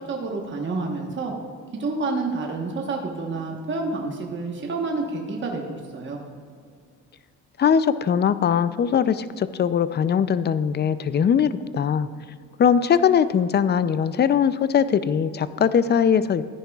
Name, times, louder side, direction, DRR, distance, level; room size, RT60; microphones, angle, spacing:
voice 1, 0.0-1.3 1.7-6.2, right 3 dB, 40° right, 0 dB, 1.3 m, -29 dB
voice 2, 7.6-12.1 12.6-16.4, left 7 dB, 35° left, 14 dB, 0.5 m, -21 dB
14.0 x 10.0 x 2.4 m, 2.2 s
cardioid pair, 90°, 30 cm